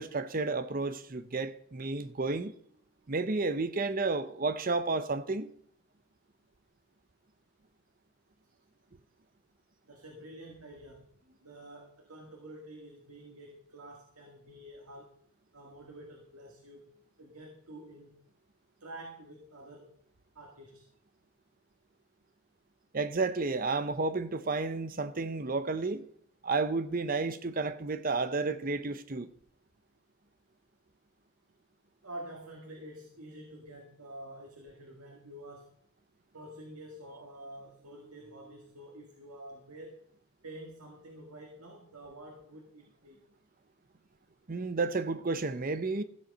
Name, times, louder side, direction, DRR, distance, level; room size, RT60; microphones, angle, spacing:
voice 1, 0.0-2.5 3.1-5.5 22.9-26.1 26.4-29.3 44.5-46.0, right 3 dB, 40° right, 0.7 m, -31 dB
voice 2, 9.9-15.2 15.5-16.9 17.2-18.2 18.8-20.0 20.3-20.9 32.0-35.7 36.3-40.0 40.4-43.2, right 1 dB, 85° right, 2.0 m, -48 dB
14.5 x 7.7 x 5.5 m
head